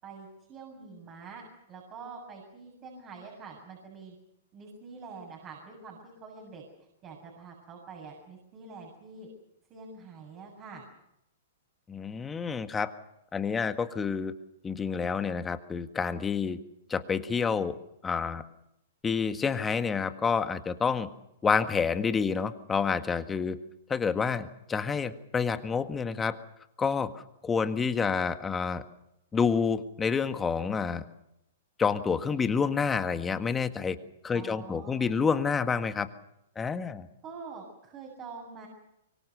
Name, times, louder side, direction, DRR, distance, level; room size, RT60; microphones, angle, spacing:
voice 1, 0.0-4.2 4.5-6.6 7.0-9.3 9.7-10.8 34.3-35.1 37.2-38.7, right 4 dB, 30° right, 0 dB, 7.6 m, -45 dB
voice 2, 11.9-12.9 13.3-14.4 14.6-16.6 16.9-17.8 18.0-18.4 19.0-21.1 21.4-23.6 23.9-26.4 26.8-27.1 27.4-28.8 29.3-31.0 31.8-34.0 34.2-36.1 36.5-37.1, left 5 dB, 15° left, 10 dB, 1.7 m, -28 dB
24.5 x 24.0 x 6.7 m, 0.84 s
hypercardioid pair, 115°, 0 cm